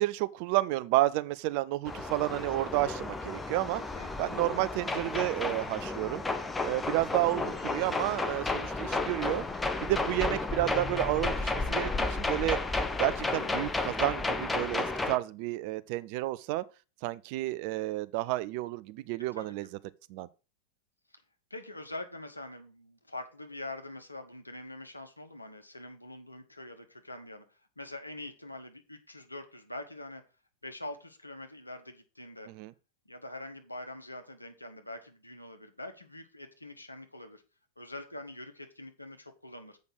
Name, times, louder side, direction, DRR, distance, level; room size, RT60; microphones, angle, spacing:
voice 1, 0.0-3.8 4.2-6.2 6.6-9.4 9.8-12.6 13.0-16.6 17.0-19.7 20.1-20.3 32.5-32.7, right 17 dB, 45° right, 0.5 m, -31 dB
sound 1, 1.9-15.2, left 3 dB, 10° left, 0.8 m, -32 dB
voice 2, 13.2-13.5 19.3-19.5 21.1-21.2 21.5-30.2 30.6-32.5 33.0-37.4 37.8-39.8, left 2 dB, 85° left, 1.2 m, -44 dB
7.8 x 5.2 x 6.1 m
figure-of-eight pair, 90°, 0 cm